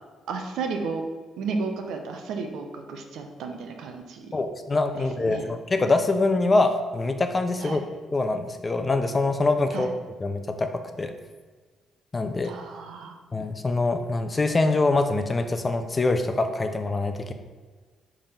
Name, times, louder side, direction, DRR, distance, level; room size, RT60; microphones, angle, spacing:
voice 1, 0.3-1.0 1.4-4.3 4.9-5.4 7.6-7.8 9.7-9.9 12.4-13.2, right 4 dB, 80° right, 4 dB, 0.8 m, -33 dB
voice 2, 4.3-7.8 8.1-9.9 10.2-11.1 12.1-12.5 13.3-17.3, left 3 dB, 25° left, 7 dB, 0.6 m, -24 dB
5.1 x 3.8 x 5.6 m, 1.4 s
cardioid pair, 90°, 0 cm